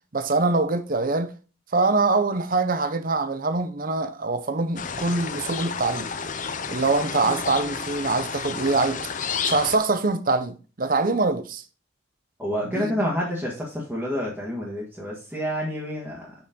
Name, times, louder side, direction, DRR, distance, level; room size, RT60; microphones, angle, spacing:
voice 1, 0.1-1.3 1.7-6.1 6.7-9.0 9.4-11.6 12.6-12.9, right 3 dB, 40° right, 0.7 m, -24 dB
sound 1, 4.8-9.8, left 6 dB, 40° left, 0.6 m, -31 dB
voice 2, 12.4-16.3, equal, 5° right, 1.8 m, -28 dB
6.9 x 5.7 x 3.8 m
head